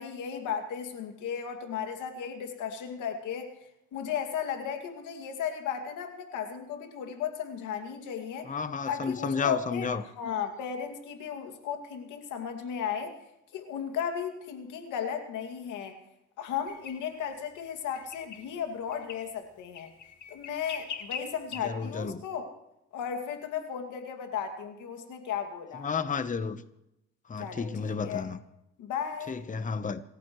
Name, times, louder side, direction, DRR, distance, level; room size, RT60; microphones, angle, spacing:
voice 1, 0.0-3.5 3.9-8.5 8.8-13.1 13.5-16.0 16.4-19.9 20.3-22.5 22.9-25.9 27.4-28.3 28.8-29.4, left 8 dB, 90° left, 2.4 m, -35 dB
voice 2, 8.5-10.0 21.6-22.2 25.8-26.6 27.3-28.4 29.3-30.0, left 5 dB, 25° left, 1.0 m, -32 dB
sound 1, 16.7-17.0 17.9-18.5 18.9-19.3 19.8-21.6, left 8 dB, 70° left, 2.1 m, -41 dB
28.0 x 14.5 x 3.1 m
cardioid pair, 90°, 30 cm